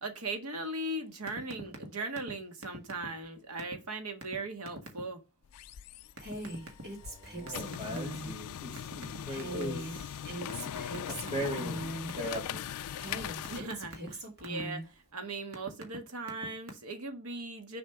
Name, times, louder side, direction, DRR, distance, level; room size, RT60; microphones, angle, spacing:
voice 1, 0.0-5.2 13.5-14.8 15.1-17.8, right 2 dB, 80° right, 1.6 m, -38 dB
sound 1, 1.3-1.9 2.2-2.3 2.6-3.3 3.6-3.8 4.2-4.3 4.7-5.0 6.2-6.8 7.5-8.3 8.8-10.0 10.5-11.8 12.1-12.6 13.0-14.6 15.2-16.0 16.2-16.7, right 1 dB, 65° right, 1.8 m, -43 dB
sound 2, 5.4-13.6, left 9 dB, 85° left, 0.4 m, -41 dB
Female speech woman speaking, 6.2-8.3 9.3-12.2 13.0-14.9, right 1 dB, 50° right, 2.7 m, -41 dB
voice 2, 7.0-10.1 11.1-11.8 12.1-12.7, equal, 25° right, 2.7 m, -39 dB
6.8 x 4.2 x 5.9 m
head